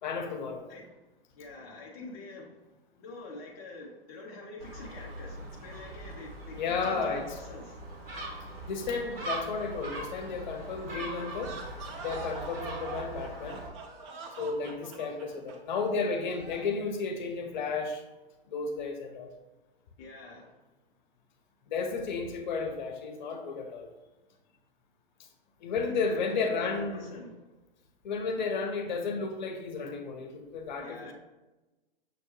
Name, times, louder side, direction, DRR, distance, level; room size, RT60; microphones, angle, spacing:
voice 1, 0.0-0.6 6.5-7.4 8.7-11.6 12.0-13.6 14.4-18.0 18.5-19.3 21.7-23.9 25.6-27.1 28.0-31.1, left 4 dB, 50° left, 5 dB, 0.7 m, -33 dB
voice 2, 0.7-1.0 1.3-7.8 20.0-20.5 26.1-27.5 30.8-31.1, left 2 dB, 20° left, -1 dB, 0.3 m, -46 dB
Gull seagull, 4.6-13.7, right 2 dB, 70° right, 1.1 m, -41 dB
sound 1, 11.3-16.8, right 4 dB, 30° right, 0.5 m, -44 dB
6.4 x 2.2 x 2.9 m, 1.1 s
figure-of-eight pair, 115°, 30 cm